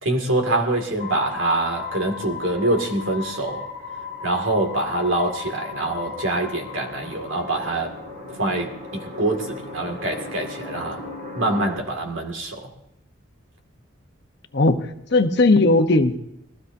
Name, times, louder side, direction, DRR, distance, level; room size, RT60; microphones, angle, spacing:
voice 1, 0.0-3.7 4.2-8.0 8.4-11.0 11.3-12.7, right 2 dB, 70° right, 3 dB, 2.1 m, -25 dB
sound 1, 1.0-11.8, left 4 dB, 40° right, 1.8 m, -36 dB
voice 2, 14.5-16.2, left 2 dB, 55° left, 7 dB, 0.8 m, -18 dB
21.0 x 15.5 x 2.7 m, 0.79 s
head